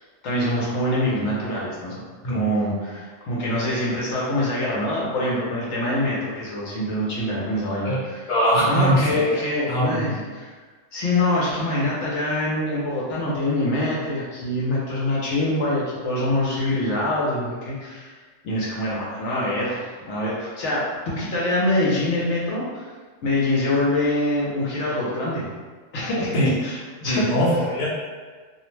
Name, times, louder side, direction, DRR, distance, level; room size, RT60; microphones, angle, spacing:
voice 1, 0.2-2.0 2.3-8.3 8.7-10.5 10.9-18.2 18.4-22.9 23.2-25.5 25.9-27.4, left 1 dB, 70° left, -6 dB, 0.9 m, -25 dB
voice 2, 8.3-9.4 9.7-10.1 26.3-26.5 27.1-27.9, equal, 45° left, -7 dB, 0.7 m, -21 dB
2.5 x 2.0 x 3.1 m, 1.4 s
omnidirectional pair, 1.3 m